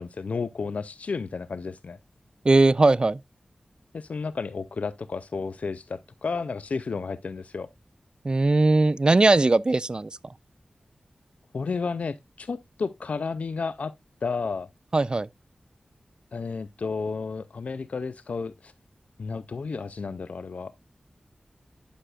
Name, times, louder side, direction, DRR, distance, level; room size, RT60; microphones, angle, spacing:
voice 1, 0.0-2.0 3.9-7.7 11.5-13.9 14.2-14.7 16.3-18.7 19.2-20.7, left 4 dB, 75° left, 0.3 m, -32 dB
voice 2, 2.4-3.2 8.2-10.1 14.9-15.3, right 2 dB, 40° right, 0.3 m, -19 dB
10.0 x 6.3 x 2.3 m
cardioid pair, 45°, 2 cm